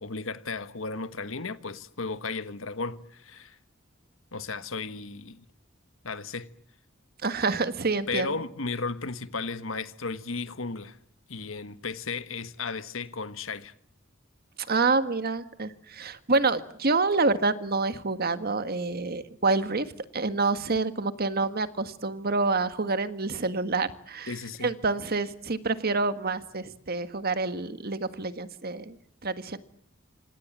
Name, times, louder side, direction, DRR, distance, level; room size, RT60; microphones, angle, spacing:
voice 1, 0.0-3.6 4.3-5.4 6.0-6.5 8.1-11.0 11.3-13.7 24.3-24.7, left 4 dB, 90° left, 1.5 m, -34 dB
voice 2, 7.2-8.3 14.6-24.3 24.6-29.0 29.2-29.6, right 3 dB, 50° right, 1.6 m, -27 dB
27.0 x 26.0 x 7.4 m
head